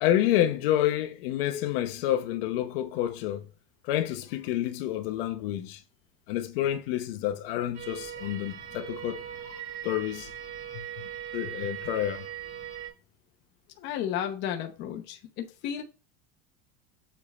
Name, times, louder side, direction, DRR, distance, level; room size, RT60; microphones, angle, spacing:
voice 1, 0.0-3.5 3.8-5.8 6.3-9.2 9.8-10.3 10.7-10.8 11.3-12.2, left 12 dB, 70° left, 1.0 m, -28 dB
sound 1, 7.7-12.9, right 10 dB, 35° right, 3.7 m, -39 dB
voice 2, 13.8-15.8, left 10 dB, 35° left, 0.9 m, -33 dB
7.3 x 3.7 x 4.2 m
cardioid pair, 175°, 30 cm